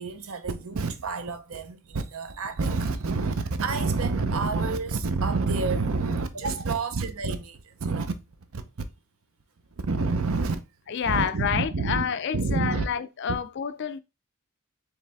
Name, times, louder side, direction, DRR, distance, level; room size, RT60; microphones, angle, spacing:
voice 1, 0.0-8.2 8.5-8.6 9.8-10.6 11.1-12.0 12.3-12.9 13.3-13.4, right 3 dB, 70° right, 0.6 m, -28 dB
voice 2, 10.9-14.0, left 7 dB, 50° left, 0.4 m, -28 dB
4.7 x 3.2 x 3.4 m
head